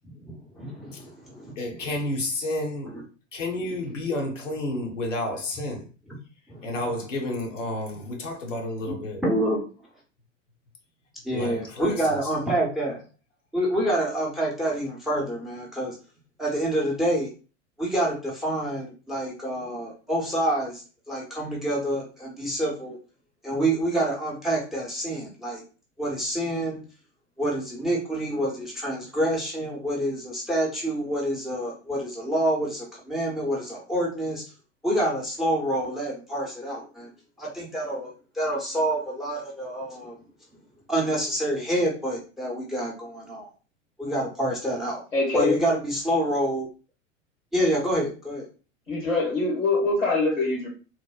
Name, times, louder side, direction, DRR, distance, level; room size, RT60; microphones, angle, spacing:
voice 1, 0.2-1.5 2.9-3.0 6.5-6.7 9.2-9.7 11.2-13.0 13.5-15.9 16.4-17.3 17.8-23.0 23.4-25.6 26.0-26.8 27.4-34.4 34.8-37.1 37.4-40.1 40.9-43.5 44.0-45.0 45.3-46.7 47.5-48.5, right 1 dB, ahead, 0.7 m, -27 dB
voice 2, 1.6-2.9 3.3-5.9 6.6-9.2 11.3-12.3, left 1 dB, 75° left, 1.0 m, -31 dB
voice 3, 45.1-45.6 48.9-50.7, left 3 dB, 90° left, 1.5 m, -24 dB
3.2 x 2.0 x 2.3 m
figure-of-eight pair, 90°, 38 cm